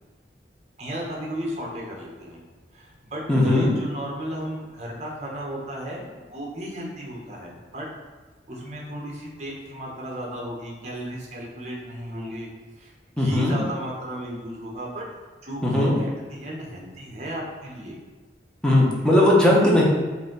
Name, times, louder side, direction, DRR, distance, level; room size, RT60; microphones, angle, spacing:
voice 1, 0.8-2.4 2.7-7.9 8.5-12.5 12.8-15.0 15.4-18.0, right 1 dB, 40° right, -2 dB, 0.8 m, -35 dB
voice 2, 3.3-3.7 13.2-13.6 15.6-16.0 18.6-19.8, left 1 dB, 5° left, -4 dB, 0.7 m, -18 dB
4.1 x 2.6 x 3.8 m, 1.3 s
head